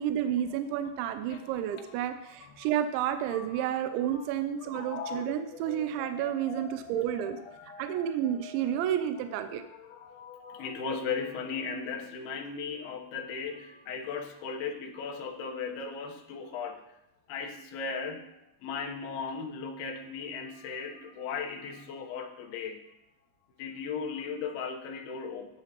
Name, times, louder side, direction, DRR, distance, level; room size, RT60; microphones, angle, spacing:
voice 1, 0.0-7.4 7.8-9.6, right 10 dB, 80° right, 8 dB, 3.0 m, -31 dB
voice 2, 1.3-1.8 2.4-2.5 3.3-3.7 4.1-4.3 4.6-8.8 9.6-16.8 17.3-18.4 18.6-22.8 23.6-25.6, left 5 dB, 70° left, 3 dB, 2.6 m, -38 dB
15.5 x 9.8 x 3.0 m, 0.84 s
omnidirectional pair, 5.4 m